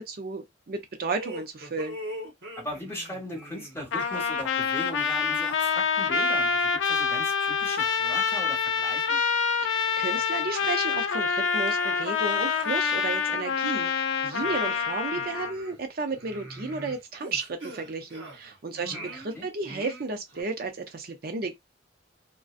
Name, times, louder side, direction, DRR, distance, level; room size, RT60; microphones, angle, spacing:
voice 1, 0.0-2.0 9.6-21.5, right 3 dB, 50° right, 0.5 m, -33 dB
sound 1, 1.2-5.9 6.2-6.4 7.0-7.1 7.7-9.0 9.4-9.5 10.0-10.5 10.8-10.9 11.4-13.8 14.3-18.6 18.9-20.4, right 1 dB, 75° right, 0.9 m, -44 dB
voice 2, 2.6-9.2 18.7-19.5, left 1 dB, 15° left, 0.9 m, -39 dB
Trumpet, 3.9-15.5, left 6 dB, 85° left, 0.4 m, -26 dB
2.5 x 2.2 x 2.4 m
head